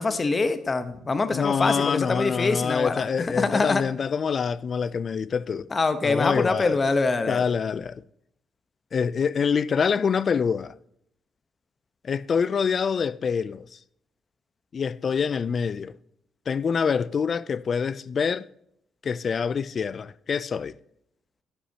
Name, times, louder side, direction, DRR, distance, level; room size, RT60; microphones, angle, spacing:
voice 1, 0.0-3.1 3.4-3.8 5.7-7.4, left 3 dB, 30° left, 0.9 m, -24 dB
voice 2, 1.3-5.7 6.0-6.8 7.3-8.0 8.9-10.7 12.0-13.8 14.7-16.0 16.5-18.5 19.0-20.8, left 6 dB, 45° left, 0.3 m, -26 dB
11.0 x 9.2 x 2.8 m
cardioid pair, 90°, 0 cm